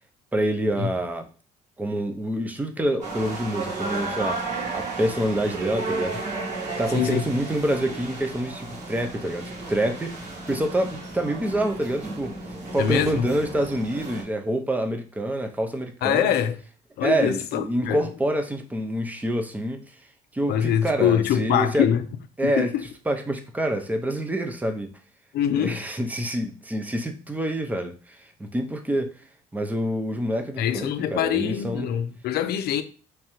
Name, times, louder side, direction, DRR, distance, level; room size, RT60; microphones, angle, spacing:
voice 1, 0.3-1.3 1.8-4.4 4.7-6.2 6.8-10.1 10.5-12.4 12.7-16.3 17.0-19.9 20.3-21.9 22.4-22.7 23.1-24.9 25.5-29.1 29.5-31.9, right 1 dB, 10° right, 0.6 m, -27 dB
sound 1, 3.0-14.2, right 3 dB, 45° right, 1.5 m, -33 dB
voice 2, 6.9-7.3 12.8-13.3 16.0-16.6 17.0-18.1 20.5-22.0 22.4-22.8 25.3-25.8 30.6-32.8, left 10 dB, 70° left, 0.5 m, -24 dB
3.5 x 3.2 x 3.0 m
cardioid pair, 110°, 17 cm